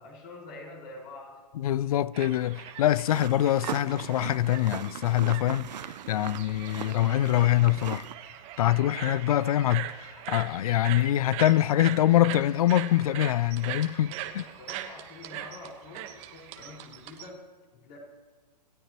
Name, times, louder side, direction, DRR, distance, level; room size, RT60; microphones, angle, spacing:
voice 1, 0.0-1.4 14.1-17.5 17.7-18.0, left 2 dB, 40° left, 5.0 m, -46 dB
voice 2, 1.6-5.7 6.1-8.1 8.6-14.4, left 13 dB, 60° left, 0.4 m, -24 dB
sound 1, 2.1-17.3, right 11 dB, 30° right, 1.2 m, -41 dB
sound 2, 3.0-8.1, right 9 dB, 80° right, 0.5 m, -39 dB
27.0 x 13.0 x 3.0 m
hypercardioid pair, 130°, 21 cm